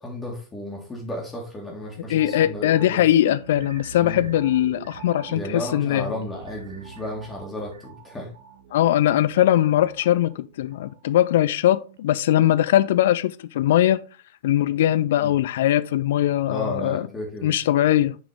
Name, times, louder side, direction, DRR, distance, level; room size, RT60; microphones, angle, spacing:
voice 1, 0.0-3.0 4.0-4.3 5.3-8.3 15.2-15.3 16.5-17.6, left 1 dB, 15° left, 1.9 m, -34 dB
voice 2, 2.1-6.1 8.7-14.0 14.4-17.1 17.4-18.2, left 12 dB, 55° left, 0.4 m, -20 dB
sound 1, 2.2-11.5 11.9-12.0, right 8 dB, 60° right, 0.9 m, -44 dB
7.8 x 5.1 x 3.5 m
figure-of-eight pair, 90°, 0 cm